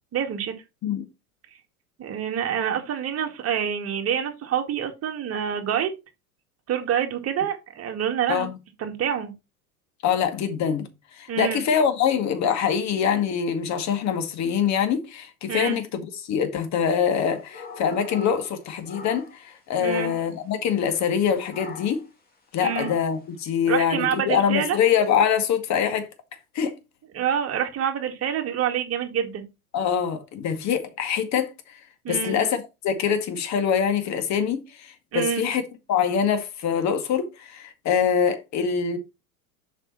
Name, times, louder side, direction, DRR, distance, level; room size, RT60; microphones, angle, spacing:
voice 1, 0.1-0.5 2.0-5.9 6.7-8.5 8.8-9.3 11.3-11.6 15.5-15.8 19.8-20.1 22.6-22.9 23.7-24.8 27.1-29.4 32.0-32.4 35.1-35.5, right 8 dB, 30° right, 2.1 m, -27 dB
voice 2, 10.0-10.9 11.2-22.0 22.5-26.1 26.5-26.7 29.7-31.5 32.1-35.6 35.9-39.0, left 7 dB, 35° left, 2.1 m, -24 dB
sound 1, 17.1-19.6 19.8-20.4 21.5-22.1 22.6-23.2, left 3 dB, 20° left, 2.3 m, -40 dB
7.0 x 5.6 x 4.1 m
hypercardioid pair, 95°, 45 cm